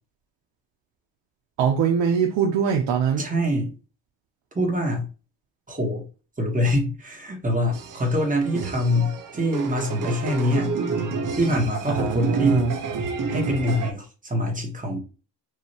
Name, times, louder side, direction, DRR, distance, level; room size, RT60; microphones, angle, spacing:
voice 1, 1.6-3.2 11.9-12.7, right 7 dB, 90° right, 0.8 m, -22 dB
voice 2, 3.2-3.7 4.5-5.1 5.7-6.1 6.4-10.7 11.4-12.8 13.3-15.0, equal, 20° right, 1.5 m, -24 dB
sound 1, 7.7-13.9, right 4 dB, 45° right, 0.9 m, -30 dB
4.9 x 2.7 x 2.8 m
cardioid pair, 115°, 43 cm